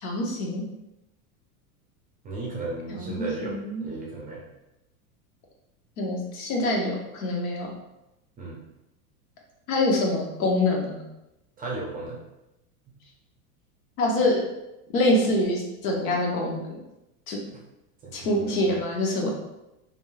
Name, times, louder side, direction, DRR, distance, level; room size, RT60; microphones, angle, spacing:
voice 1, 0.0-0.7 3.0-3.9 6.0-7.7 9.7-11.0 14.0-14.4 14.9-16.6 17.3-17.4 18.1-19.3, left 1 dB, 65° left, -1 dB, 0.9 m, -25 dB
voice 2, 2.2-4.4 8.4-8.6 11.6-12.2 12.9-13.0 17.5-17.6 18.0-18.8, right 2 dB, 20° right, -3 dB, 0.6 m, -35 dB
3.0 x 2.6 x 2.3 m, 0.92 s
hypercardioid pair, 115°, 45 cm